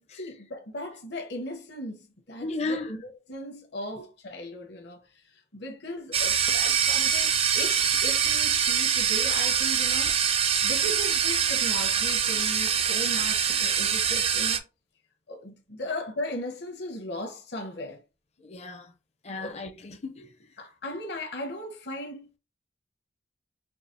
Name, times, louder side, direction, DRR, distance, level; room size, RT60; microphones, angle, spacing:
voice 1, 0.0-10.2 10.6-14.6 15.3-18.0 19.3-19.6 20.6-22.4, left 1 dB, 60° left, 0.9 m, -37 dB
voice 2, 2.4-2.9 18.4-18.9 19.2-20.3, left 2 dB, 35° left, 0.5 m, -34 dB
sound 1, 6.1-14.6, right 8 dB, 30° right, 0.3 m, -24 dB
4.7 x 2.3 x 2.6 m
head